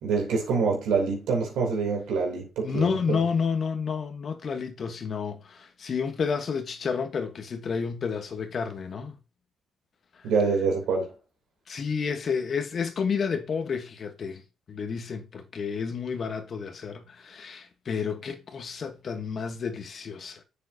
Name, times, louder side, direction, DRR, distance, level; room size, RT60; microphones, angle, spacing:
voice 1, 0.0-3.2 10.2-11.1, right 4 dB, 85° right, 3.1 m, -26 dB
voice 2, 2.6-9.2 10.1-10.3 11.7-20.4, left 6 dB, 50° left, 1.2 m, -30 dB
7.4 x 6.5 x 2.8 m
cardioid pair, 90°, 0 cm